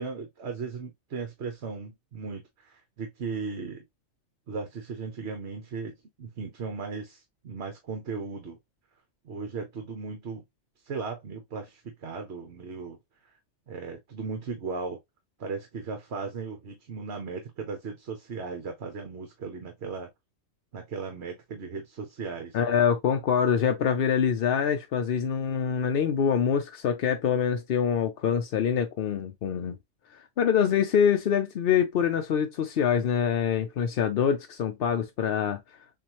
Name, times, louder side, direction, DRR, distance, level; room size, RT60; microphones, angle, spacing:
voice 1, 0.0-3.8 4.5-8.6 9.2-10.4 10.8-13.0 13.2-13.4 13.7-15.0 15.4-20.1 20.7-22.6, right 4 dB, 50° right, 1.2 m, -37 dB
voice 2, 22.5-29.8 30.1-35.6, left 7 dB, 55° left, 0.7 m, -25 dB
7.1 x 2.5 x 2.9 m
omnidirectional pair, 1.5 m